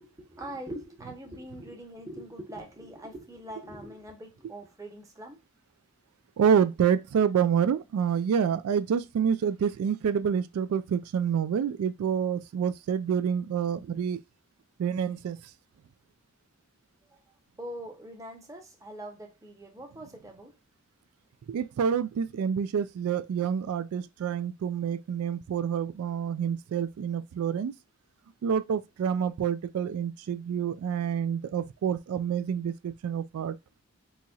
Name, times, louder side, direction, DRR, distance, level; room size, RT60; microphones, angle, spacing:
voice 1, 0.0-5.4 17.1-17.2 17.6-20.6, right 1 dB, 15° right, 0.8 m, -43 dB
voice 2, 6.4-14.2 14.8-15.4 21.5-27.7 28.4-33.6, right 7 dB, 85° right, 0.3 m, -27 dB
4.1 x 2.9 x 2.3 m
head